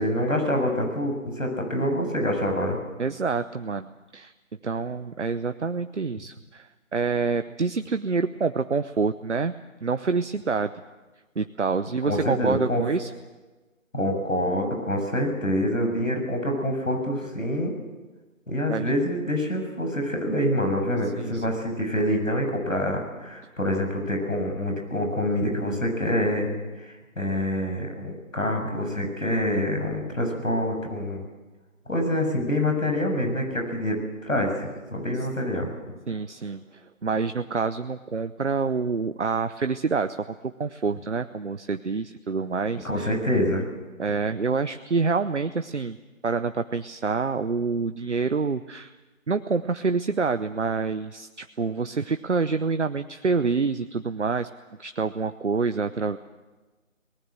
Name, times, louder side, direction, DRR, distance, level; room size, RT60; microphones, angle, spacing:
voice 1, 0.0-2.8 12.0-12.8 13.9-17.7 18.5-26.5 26.8-31.2 31.9-35.7 42.8-43.6, left 1 dB, 75° left, 3 dB, 7.2 m, -26 dB
voice 2, 3.0-4.3 4.6-9.5 9.8-10.7 11.4-13.1 18.7-18.9 21.2-21.6 36.1-43.1 44.0-46.0 46.2-48.9 49.3-54.5 54.8-56.2, right 4 dB, 60° right, 10 dB, 0.8 m, -27 dB
23.5 x 19.5 x 7.7 m, 1.2 s
figure-of-eight pair, 160°, 40 cm